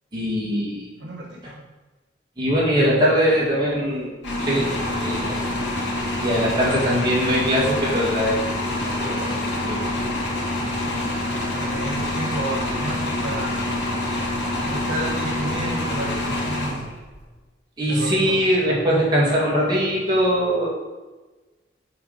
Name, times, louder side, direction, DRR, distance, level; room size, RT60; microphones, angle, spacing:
voice 1, 0.1-0.9 2.4-4.1 4.4-5.4 6.2-8.5 8.7-9.8 17.8-20.7, equal, 20° right, -6 dB, 1.9 m, -21 dB
voice 2, 1.0-1.5 10.8-13.6 14.6-16.9 17.9-18.4, right 1 dB, 75° right, -1 dB, 1.6 m, -31 dB
sound 1, 4.2-17.2, left 1 dB, 85° left, 2.2 m, -26 dB
8.6 x 3.5 x 5.5 m, 1.2 s
head